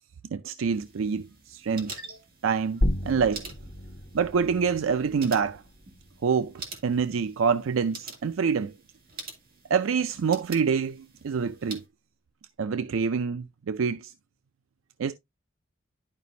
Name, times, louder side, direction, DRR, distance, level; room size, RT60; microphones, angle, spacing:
voice 1, 0.3-2.0 2.4-3.5 4.1-5.6 6.2-6.5 6.8-8.7 9.7-11.8 12.6-14.1 15.0-15.1, right 6 dB, 85° right, 0.4 m, -26 dB
sound 1, 0.7-11.8, right 3 dB, 45° right, 2.2 m, -46 dB
sound 2, 2.8-7.9, left 1 dB, 55° left, 1.0 m, -34 dB
11.0 x 5.0 x 2.6 m
head